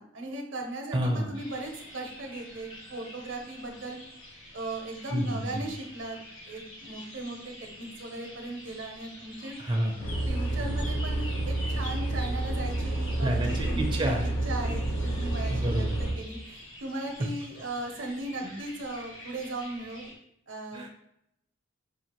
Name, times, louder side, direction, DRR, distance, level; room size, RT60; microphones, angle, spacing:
voice 1, 0.0-4.0 4.5-6.2 6.5-9.5 10.3-20.1 20.5-20.9, right 2 dB, 70° right, 3 dB, 0.7 m, -37 dB
voice 2, 0.9-1.3 5.1-5.4 9.6-10.2 13.2-14.3 15.5-15.9 18.4-18.5 20.7-20.9, right 1 dB, 25° right, 1 dB, 0.4 m, -29 dB
sound 1, 1.3-20.1, left 1 dB, 85° left, 1.5 m, -47 dB
sound 2, 10.0-16.1, right 2 dB, 65° left, 0.9 m, -29 dB
4.9 x 2.4 x 2.9 m, 0.79 s
head